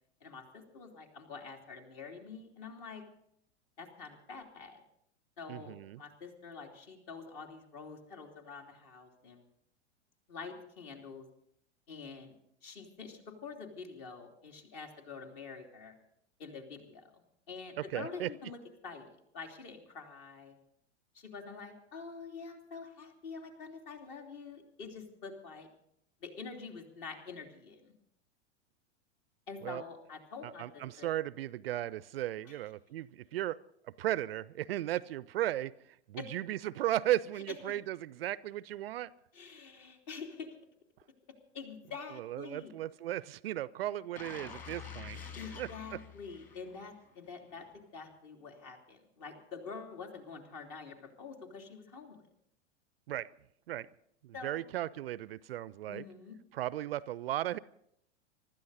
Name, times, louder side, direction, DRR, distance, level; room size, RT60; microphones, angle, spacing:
voice 1, 0.2-3.0 3.8-4.8 5.4-9.4 10.3-11.2 11.9-12.3 12.6-15.9 16.4-20.5 21.1-25.7 26.2-27.9 29.5-31.1 32.4-32.6 36.2-36.3 37.6-37.7 39.3-40.5 41.5-42.7 45.4-52.2 54.3-54.6 55.9-56.4, left 5 dB, 50° left, 3 dB, 3.1 m, -46 dB
voice 2, 5.5-6.0 17.8-18.3 29.6-29.8 30.4-33.6 33.8-35.7 36.1-39.1 42.1-45.2 45.6-46.0 53.1-53.3 53.7-53.9 54.2-56.0 56.5-57.6, right 13 dB, 55° right, 21 dB, 0.5 m, -36 dB
sound 1, 44.2-47.1 47.5-47.7, left 6 dB, 25° left, 2.4 m, -47 dB
25.0 x 13.0 x 4.1 m, 0.72 s
figure-of-eight pair, 95°, 36 cm